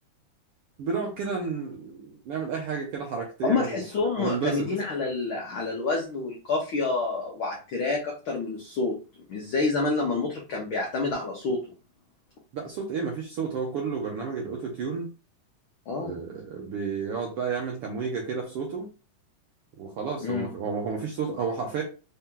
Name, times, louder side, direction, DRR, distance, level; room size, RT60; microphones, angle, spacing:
voice 1, 0.8-3.8 4.2-4.7 12.5-15.1 16.0-18.9 19.8-21.8, right 5 dB, 75° right, 0 dB, 1.3 m, -31 dB
voice 2, 3.4-9.0 9.3-11.6 15.9-16.2 20.2-20.5, left 3 dB, 80° left, -1 dB, 1.1 m, -28 dB
4.7 x 2.8 x 3.7 m, 0.33 s
omnidirectional pair, 3.5 m